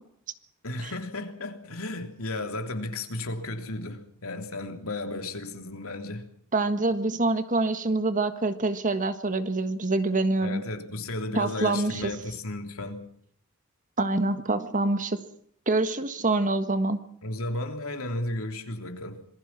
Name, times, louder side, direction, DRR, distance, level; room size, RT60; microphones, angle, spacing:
voice 1, 0.6-6.3 10.4-13.0 17.2-19.3, left 2 dB, 70° left, 3.3 m, -34 dB
voice 2, 6.5-10.6 11.3-12.0 14.0-15.2 15.7-17.0, right 2 dB, 35° right, 1.5 m, -26 dB
26.5 x 20.5 x 6.0 m
head